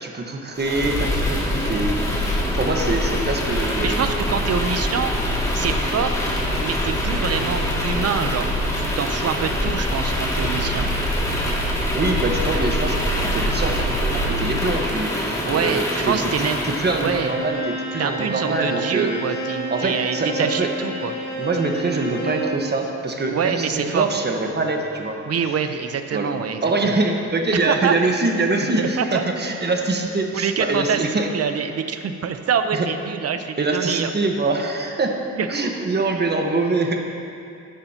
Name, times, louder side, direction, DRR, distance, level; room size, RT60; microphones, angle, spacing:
voice 1, 0.0-4.1 11.9-19.2 19.7-20.7 21.4-25.2 26.1-26.3 26.6-31.3 32.7-32.9 33.6-35.1 35.5-37.0, right 2 dB, 35° right, 2 dB, 1.4 m, -24 dB
sound 1, 0.5-17.3, left 1 dB, 10° left, 2.4 m, -24 dB
voice 2, 3.8-5.1 5.5-6.2 6.6-8.5 8.8-10.9 15.4-16.6 17.0-17.3 18.0-21.1 23.3-24.2 25.3-27.0 27.5-28.0 28.6-29.2 30.3-31.0 31.3-34.1 35.3-35.5, right 7 dB, 55° right, 8 dB, 0.8 m, -25 dB
Bowed string instrument, 16.9-22.6, right 1 dB, 70° left, 2.4 m, -30 dB
14.0 x 10.5 x 2.9 m, 2.8 s
cardioid pair, 80°, 30 cm